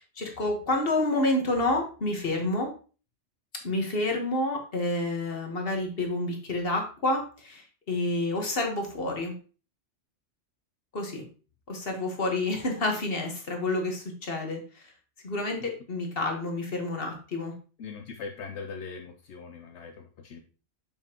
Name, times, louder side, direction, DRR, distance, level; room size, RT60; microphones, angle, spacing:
voice 1, 0.0-2.7 3.6-9.3 10.9-11.2 11.7-14.8 15.2-17.5, left 2 dB, 50° left, 2 dB, 1.6 m, -29 dB
voice 2, 17.8-20.4, left 5 dB, 70° left, 5 dB, 0.9 m, -40 dB
6.9 x 5.5 x 2.9 m, 0.36 s
omnidirectional pair, 1.2 m